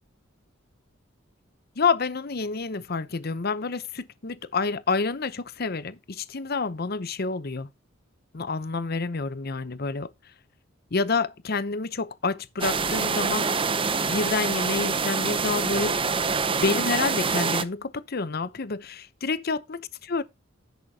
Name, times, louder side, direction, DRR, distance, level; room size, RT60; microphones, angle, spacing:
voice 1, 1.8-7.7 8.3-10.1 10.9-13.5 13.7-16.0 16.6-20.2, left 4 dB, 50° left, 0.8 m, -28 dB
sound 1, 12.6-17.6, right 5 dB, 25° right, 0.7 m, -26 dB
10.5 x 8.2 x 2.8 m
head